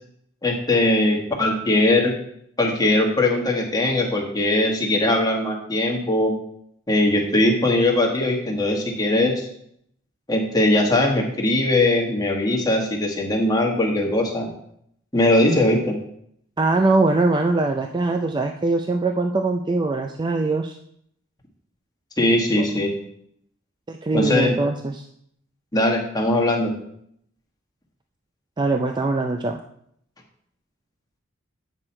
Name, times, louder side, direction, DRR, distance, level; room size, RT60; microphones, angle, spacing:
voice 1, 0.4-2.1 2.6-6.3 6.9-9.5 10.3-14.5 15.1-16.0 22.2-22.9 24.1-24.6 25.7-26.7, left 1 dB, 20° left, 0 dB, 1.5 m, -20 dB
voice 2, 16.6-20.8 22.6-22.7 23.9-25.0 28.6-29.6, right 3 dB, 20° right, 5 dB, 0.4 m, -22 dB
8.9 x 6.3 x 4.3 m, 0.70 s
head